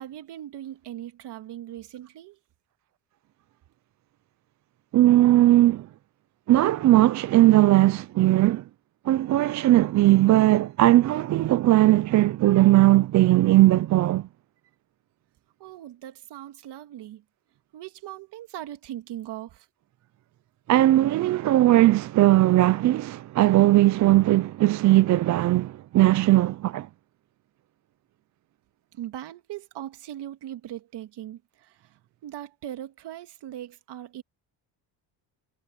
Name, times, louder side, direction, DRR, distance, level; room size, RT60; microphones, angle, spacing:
voice 1, 0.0-2.4 15.6-17.2 17.7-19.7 28.9-34.2, right 12 dB, 65° right, 2.1 m, -39 dB
voice 2, 4.9-5.9 6.5-8.6 9.1-14.3 20.7-26.9, right 15 dB, 45° right, 0.4 m, -19 dB
cardioid pair, 150°, 43 cm